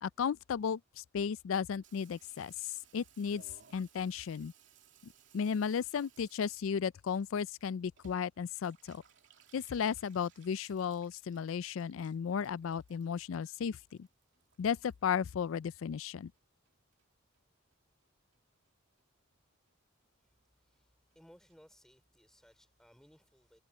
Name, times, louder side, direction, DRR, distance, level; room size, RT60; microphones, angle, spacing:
voice 1, 0.0-3.4 3.7-4.5 5.0-9.0 9.5-14.1 14.6-16.3, left 7 dB, 85° left, 0.4 m, -35 dB
Water tap faucet / Bathtub (filling or washing), 1.8-16.4 16.7-17.4 17.7-17.8 18.0-18.1 18.3-18.7 19.0-19.1 19.3-19.4 19.7-19.8 20.0-20.1 20.3-20.4 20.7-20.8 21.1-21.2 21.5-21.6, right 7 dB, 65° right, 3.0 m, -65 dB
voice 2, 20.2-23.6, equal, 5° left, 3.5 m, -63 dB
head